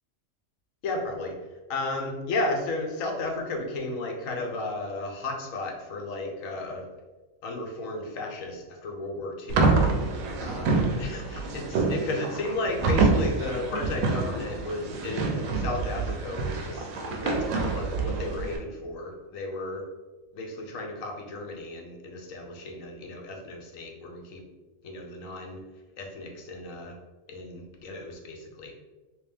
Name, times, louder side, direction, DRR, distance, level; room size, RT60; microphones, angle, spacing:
voice 1, 0.8-1.4 1.7-6.9 7.4-9.8 10.4-19.8 20.3-24.4 24.8-25.6 26.0-26.9 27.3-28.7, left 2 dB, 75° left, 1 dB, 1.0 m, -34 dB
sound 1, 9.5-18.6, right 3 dB, 80° right, 1.0 m, -27 dB
3.2 x 2.9 x 3.3 m, 1.3 s
omnidirectional pair, 1.4 m